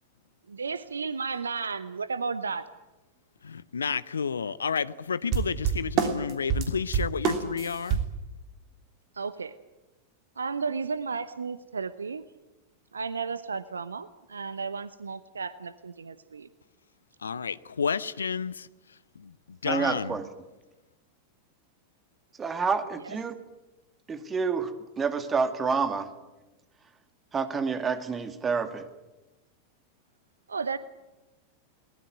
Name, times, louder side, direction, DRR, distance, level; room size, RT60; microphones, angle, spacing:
voice 1, 0.5-2.7 9.1-9.5 10.4-12.2 12.9-16.5 23.0-23.2 30.5-30.8, right 5 dB, 75° right, 0.9 m, -33 dB
voice 2, 3.4-8.0 17.2-18.7 19.2-19.3 19.6-20.1, left 6 dB, 70° left, 0.7 m, -30 dB
sound 1, 5.3-8.1, right 8 dB, 40° right, 3.2 m, -27 dB
voice 3, 19.6-20.3 22.4-23.4 24.1-26.1 27.3-28.9, right 5 dB, 20° right, 2.2 m, -28 dB
22.0 x 19.5 x 9.2 m
figure-of-eight pair, 90°, 0 cm